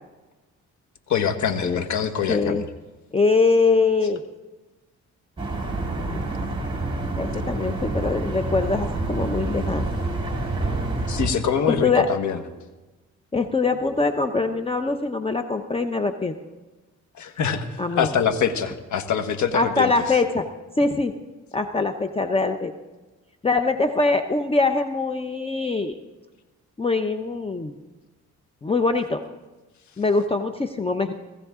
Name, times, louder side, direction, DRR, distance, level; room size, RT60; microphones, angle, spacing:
voice 1, 1.1-2.7 11.1-12.4 17.1-19.9, left 7 dB, 70° left, 8 dB, 1.5 m, -24 dB
voice 2, 2.3-2.6 3.1-4.2 6.0-6.2 7.2-9.8 11.8-12.1 13.3-16.3 17.8-18.1 19.5-20.5 20.8-21.1 21.5-22.7 23.4-25.9 26.8-27.7 28.6-29.2 30.0-31.1, left 3 dB, 20° left, 7 dB, 0.8 m, -23 dB
sound 1, 5.4-11.3, right 2 dB, 15° right, 3.8 m, -27 dB
18.0 x 15.0 x 3.7 m, 1.2 s
cardioid pair, 90°, 30 cm